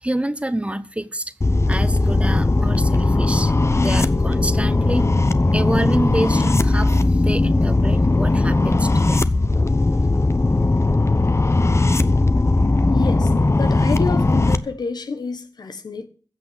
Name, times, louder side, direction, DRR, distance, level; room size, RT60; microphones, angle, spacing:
voice 1, 0.0-1.3 1.7-5.1 5.5-9.3, right 1 dB, 15° right, 1.1 m, -27 dB
sound 1, 1.4-14.6, left 2 dB, 40° left, 0.9 m, -18 dB
voice 2, 12.9-16.1, left 4 dB, 90° left, 1.3 m, -29 dB
15.0 x 6.0 x 7.8 m
cardioid pair, 45°, 7 cm